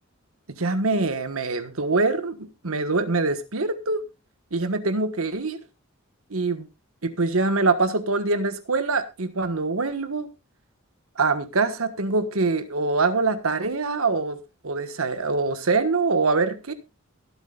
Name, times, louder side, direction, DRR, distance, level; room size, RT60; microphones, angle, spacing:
voice 1, 0.5-4.0 4.5-5.6 6.3-6.7 7.0-10.3 11.1-14.4 14.6-16.7, right 3 dB, 90° right, 1.4 m, -24 dB
23.5 x 8.3 x 2.4 m
head